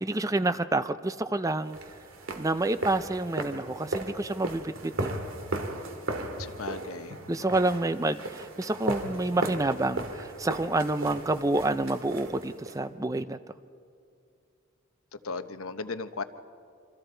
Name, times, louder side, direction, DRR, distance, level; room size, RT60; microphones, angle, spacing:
voice 1, 0.0-1.8 2.4-5.1 7.3-13.4, right 2 dB, 15° right, 12 dB, 0.5 m, -28 dB
sound 1, 1.7-12.8, right 2 dB, 75° right, 2.0 m, -36 dB
voice 2, 6.6-7.1 15.2-16.2, left 4 dB, 85° left, 10 dB, 1.0 m, -35 dB
27.5 x 25.5 x 4.5 m, 2.4 s
head